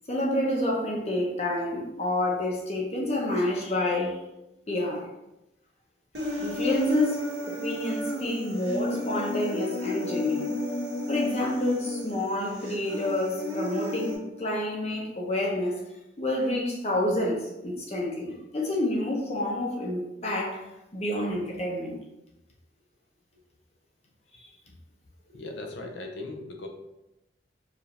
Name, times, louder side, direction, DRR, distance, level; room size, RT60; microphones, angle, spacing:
voice 1, 0.1-4.2 4.7-5.1 6.2-10.5 11.1-15.8 16.2-20.7 20.9-22.0, left 1 dB, 35° left, -2 dB, 0.9 m, -28 dB
Human voice, 6.1-14.1, left 1 dB, 70° right, 1.5 m, -32 dB
voice 2, 25.3-26.7, left 2 dB, 80° left, 2 dB, 0.7 m, -38 dB
4.9 x 2.7 x 3.3 m, 0.92 s
head